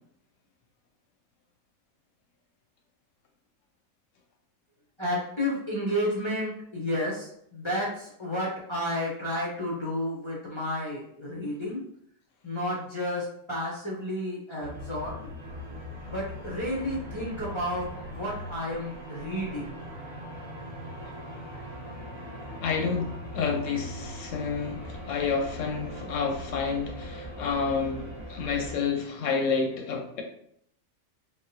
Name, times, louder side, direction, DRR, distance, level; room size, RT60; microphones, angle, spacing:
voice 1, 5.0-11.8 12.4-15.2 16.1-19.7, equal, 35° left, -6 dB, 0.4 m, -31 dB
sound 1, 14.6-28.8, equal, 25° right, 0.8 m, -40 dB
voice 2, 22.6-30.2, left 5 dB, 65° left, 3 dB, 0.9 m, -29 dB
4.1 x 2.2 x 2.6 m, 0.68 s
omnidirectional pair, 1.5 m